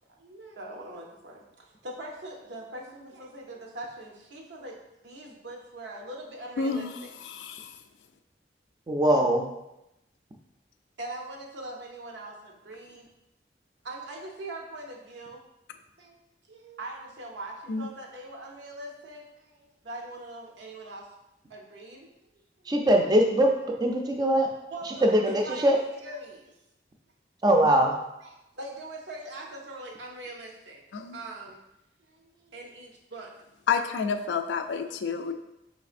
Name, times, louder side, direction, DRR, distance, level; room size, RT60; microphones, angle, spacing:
voice 1, 0.2-7.1 11.0-13.1 13.8-15.4 16.0-16.2 16.5-21.1 21.5-22.7 24.7-26.6 28.2-30.8 31.1-31.6 32.0-33.3, right 1 dB, 90° right, 0 dB, 0.7 m, -42 dB
voice 2, 6.6-6.9 7.3-7.7 17.7-17.9 30.9-31.2 33.7-35.3, left 5 dB, 85° left, 8 dB, 0.3 m, -29 dB
voice 3, 8.9-9.5 22.7-23.5 23.8-24.5 24.9-25.8 27.4-28.0, right 1 dB, 25° right, 2 dB, 0.4 m, -22 dB
4.1 x 3.2 x 2.5 m, 0.89 s
head